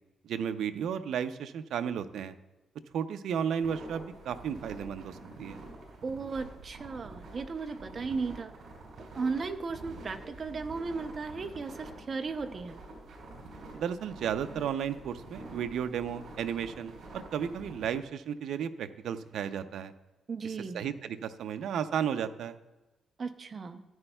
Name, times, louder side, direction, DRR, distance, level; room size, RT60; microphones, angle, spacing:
voice 1, 0.2-2.3 2.9-5.6 13.7-19.9 20.4-22.5, right 8 dB, 80° right, 10 dB, 0.5 m, -34 dB
sound 1, 3.6-17.9, right 2 dB, 60° right, 3.5 m, -47 dB
voice 2, 6.0-8.5 9.0-12.8 20.3-20.8 23.2-23.8, right 4 dB, 35° right, 7 dB, 0.6 m, -36 dB
14.0 x 9.8 x 2.3 m, 1.1 s
wide cardioid pair, 155°, 0 cm